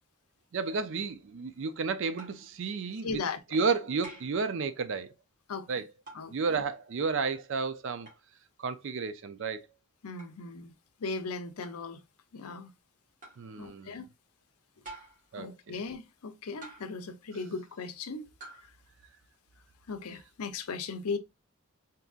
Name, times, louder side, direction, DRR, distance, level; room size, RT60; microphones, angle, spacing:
voice 1, 0.5-3.2 3.5-5.1 5.7-5.9 6.3-8.1 8.6-9.7 13.4-14.0 15.3-15.8, right 4 dB, 55° right, 0.4 m, -32 dB
sound 1, 2.2-2.5 4.0-4.4 6.1-6.3 8.0-8.2 10.2-10.4 11.6-11.9 13.2-13.5 14.8-15.3 16.6-17.1 18.4-18.7, right 2 dB, 35° right, 1.5 m, -48 dB
voice 2, 3.0-3.4 5.5-5.7 6.1-6.6 10.0-10.7 11.0-12.0 12.3-12.7 13.6-14.1 15.4-18.2 19.9-21.2, left 4 dB, 85° left, 0.6 m, -37 dB
3.7 x 2.8 x 2.3 m
head